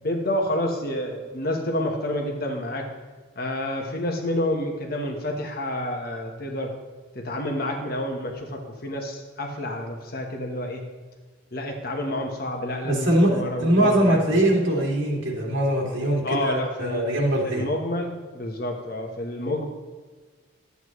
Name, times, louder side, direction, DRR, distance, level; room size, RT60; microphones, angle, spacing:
voice 1, 0.0-2.9 3.4-6.7 7.1-10.8 11.5-14.3 16.2-17.1 17.4-19.7, left 1 dB, 50° left, 2 dB, 1.2 m, -29 dB
voice 2, 12.8-17.7, right 1 dB, 70° right, -4 dB, 2.6 m, -22 dB
11.5 x 8.2 x 3.1 m, 1.4 s
head